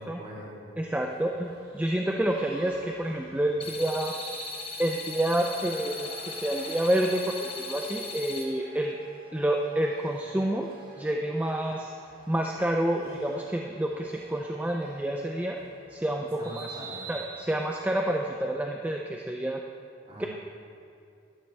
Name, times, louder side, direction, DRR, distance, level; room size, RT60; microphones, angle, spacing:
voice 1, 0.0-0.6 16.4-17.0 20.0-20.3, equal, 30° right, -6 dB, 2.9 m, -42 dB
voice 2, 0.8-4.2 4.8-9.0 9.3-10.7 11.0-11.9 12.3-15.6 15.9-16.7 17.1-19.6 20.2-20.3, right 1 dB, 10° right, 1 dB, 0.4 m, -28 dB
sound 1, 1.0-18.2, right 3 dB, 50° right, 2.9 m, -48 dB
sound 2, 3.6-8.4, left 4 dB, 30° left, 1.3 m, -38 dB
12.5 x 12.0 x 3.4 m, 2.5 s
head